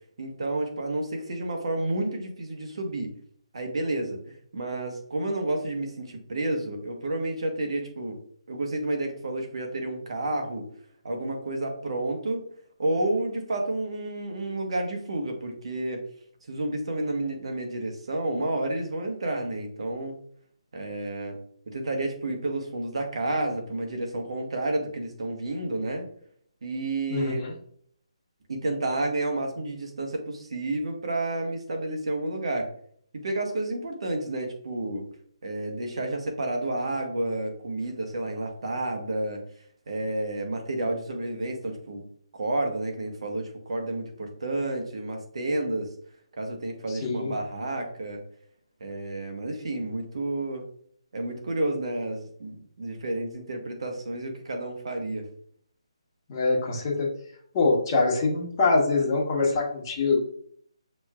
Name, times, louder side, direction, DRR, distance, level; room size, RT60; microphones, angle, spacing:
voice 1, 0.2-3.1 3.5-4.2 4.5-8.2 8.5-10.6 11.0-12.5 12.8-16.0 16.5-20.1 20.7-21.4 21.7-26.1 26.6-27.4 28.5-32.7 33.1-35.0 35.4-39.4 39.9-42.0 42.3-45.9 46.4-48.2 48.8-50.6 51.1-55.2, right 2 dB, 60° right, 3 dB, 1.2 m, -30 dB
voice 2, 27.1-27.5 47.0-47.3 56.3-57.1 57.5-60.2, left 3 dB, 30° left, -1 dB, 1.2 m, -24 dB
6.0 x 3.1 x 2.4 m, 0.62 s
hypercardioid pair, 160°, 3 cm